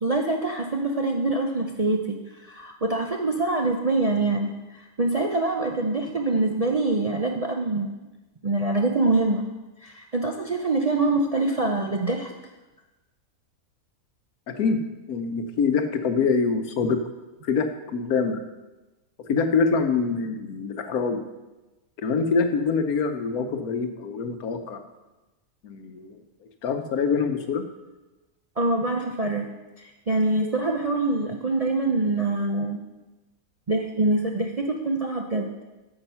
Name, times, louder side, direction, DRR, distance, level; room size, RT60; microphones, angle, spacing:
voice 1, 0.0-2.2 2.5-4.5 4.8-7.9 8.4-9.4 9.8-12.3 28.6-29.5 29.8-32.9 33.7-35.5, right 2 dB, 45° right, 1 dB, 0.5 m, -24 dB
voice 2, 15.1-17.0 17.4-17.7 17.9-18.4 19.3-21.2 22.0-24.8 25.6-26.2 26.6-27.6, left 5 dB, 85° left, 7 dB, 1.3 m, -25 dB
8.8 x 6.6 x 5.5 m, 1.1 s
omnidirectional pair, 1.5 m